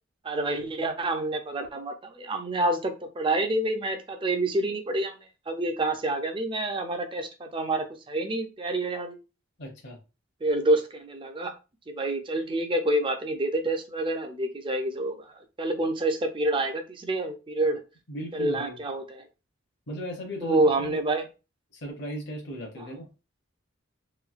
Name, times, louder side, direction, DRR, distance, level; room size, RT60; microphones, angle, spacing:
voice 1, 0.2-5.2 5.5-9.2 10.4-11.5 11.9-15.3 15.6-17.8 18.3-19.2 20.4-21.2, right 2 dB, 25° right, 6 dB, 0.4 m, -27 dB
voice 2, 9.6-10.0 18.1-18.8 19.9-21.0 21.8-23.1, equal, 55° left, -1 dB, 0.7 m, -37 dB
3.0 x 2.6 x 2.4 m, 0.30 s
head